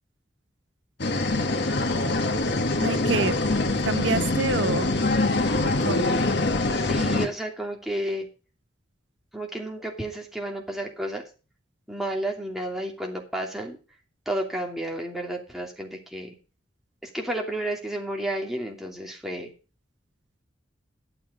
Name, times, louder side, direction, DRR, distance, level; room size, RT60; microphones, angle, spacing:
sound 1, 1.0-7.3, left 2 dB, 65° left, 1.6 m, -24 dB
voice 1, 2.8-3.4 3.8-5.0 5.6-6.2, right 3 dB, 80° right, 0.9 m, -28 dB
voice 2, 6.7-8.3 9.3-11.2 11.9-13.8 14.3-16.4 17.0-19.5, right 1 dB, ahead, 2.8 m, -31 dB
13.0 x 7.3 x 5.0 m
head